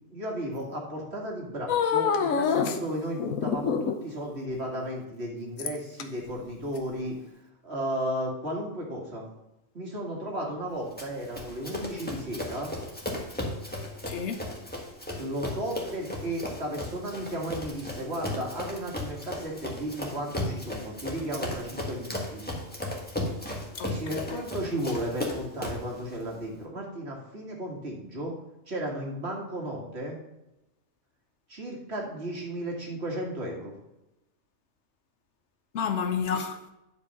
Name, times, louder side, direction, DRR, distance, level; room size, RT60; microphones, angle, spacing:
voice 1, 0.1-7.2 7.6-9.3 9.7-12.7 15.2-22.4 23.8-28.3 28.7-30.2 31.5-33.7, right 1 dB, 55° right, 2.3 m, -34 dB
sound 1, 1.7-2.8 3.2-4.1 5.6-6.0 6.8-6.9, left 6 dB, 90° left, 1.2 m, -26 dB
Run, 11.0-25.9, left 1 dB, 5° left, 1.6 m, -35 dB
voice 2, 14.1-14.5 23.7-24.4 35.7-36.6, left 6 dB, 65° left, 0.9 m, -31 dB
9.8 x 5.1 x 5.5 m
omnidirectional pair, 1.4 m